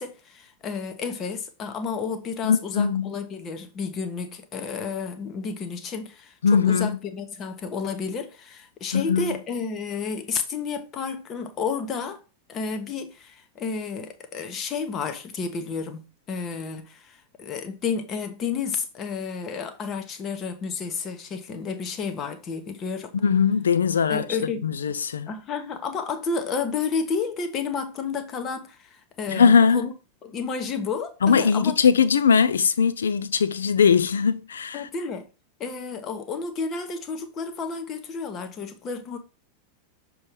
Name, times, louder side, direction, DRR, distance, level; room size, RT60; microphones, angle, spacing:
voice 1, 0.0-12.2 12.5-23.1 24.1-24.7 25.3-29.9 30.2-31.8 34.7-35.3 35.6-39.2, left 5 dB, 30° left, 1.0 m, -31 dB
voice 2, 2.4-3.1 6.4-7.0 8.9-9.4 23.2-25.3 29.3-29.8 31.2-34.9, left 6 dB, 70° left, 0.5 m, -20 dB
6.6 x 3.1 x 5.2 m
figure-of-eight pair, 90°, 0 cm